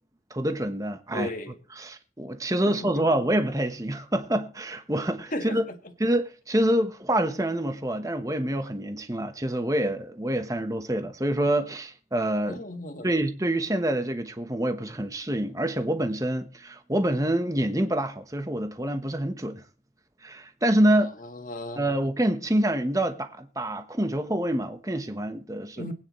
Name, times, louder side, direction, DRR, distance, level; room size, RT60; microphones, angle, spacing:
voice 1, 0.3-1.3 1.9-5.6 6.0-12.6 13.0-19.6 20.2-21.1 21.7-25.9, right 1 dB, 20° right, 1.1 m, -26 dB
voice 2, 1.1-1.6 2.7-3.0 5.3-5.9 12.5-13.1 20.9-21.9 25.7-25.9, left 1 dB, 50° left, 1.7 m, -36 dB
22.5 x 9.5 x 3.1 m
head